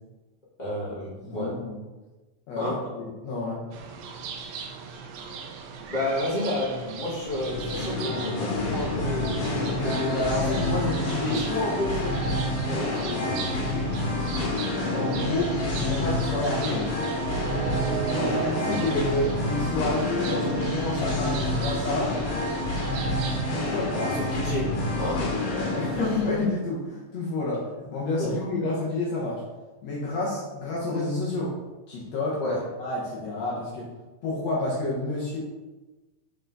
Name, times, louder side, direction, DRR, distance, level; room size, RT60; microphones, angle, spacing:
voice 1, 0.6-1.6 2.6-2.9 5.9-9.4 11.2-12.2 12.6-13.3 18.1-18.4 23.9-25.3 28.2-28.4 32.4-32.6, left 1 dB, 35° left, -8 dB, 0.7 m, -31 dB
voice 2, 1.2-1.7 2.5-3.6 9.7-11.4 12.7-13.9 14.9-17.1 18.1-22.1 23.6-23.9 25.5-29.4 29.8-31.6 31.9-33.9 34.2-35.4, left 2 dB, 65° left, -6 dB, 2.0 m, -29 dB
sound 1, 3.7-23.5, right 6 dB, 75° right, 1.6 m, -37 dB
Singing, 7.3-26.4, left 1 dB, 90° left, 2.9 m, -28 dB
6.7 x 3.8 x 3.9 m, 1.2 s
omnidirectional pair, 3.6 m